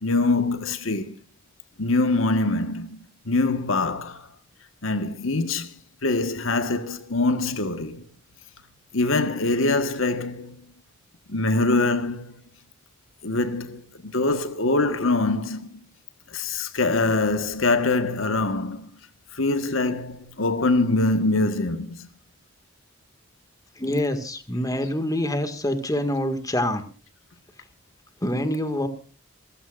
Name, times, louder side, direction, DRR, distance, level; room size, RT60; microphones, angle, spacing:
voice 1, 0.0-1.1 1.8-4.3 4.8-5.7 6.0-8.0 8.9-10.6 11.3-12.4 13.2-15.8 16.3-18.9 19.3-22.1 24.7-24.9, left 2 dB, 80° left, 1.6 m, -24 dB
voice 2, 23.8-26.8 28.2-28.9, left 1 dB, 20° left, 2.1 m, -26 dB
27.5 x 15.5 x 2.6 m
head